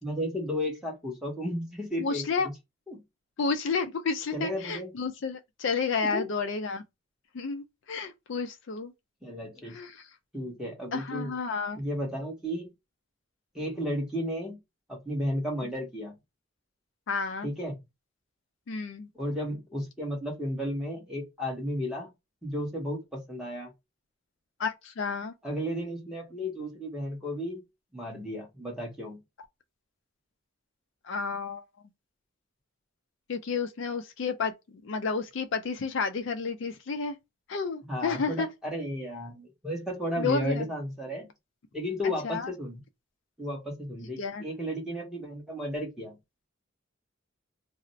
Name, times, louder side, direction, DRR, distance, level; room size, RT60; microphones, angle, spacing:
voice 1, 0.0-2.5 2.9-3.0 4.3-4.9 6.0-6.3 9.2-9.8 10.3-11.3 11.8-12.7 13.5-14.6 14.9-16.1 17.4-17.8 19.1-22.1 22.4-23.7 25.4-27.6 27.9-29.2 37.9-41.3 41.7-42.8 43.4-46.2, equal, 5° right, 1.0 m, -33 dB
voice 2, 2.0-2.5 3.4-6.8 7.3-8.9 9.7-10.0 10.9-11.8 17.1-17.5 18.7-19.1 24.6-25.3 31.0-31.6 33.3-34.5 34.8-37.2 37.5-38.5 40.2-40.6 42.2-42.5 44.2-44.4, left 5 dB, 60° left, 0.4 m, -31 dB
2.5 x 2.0 x 3.9 m
head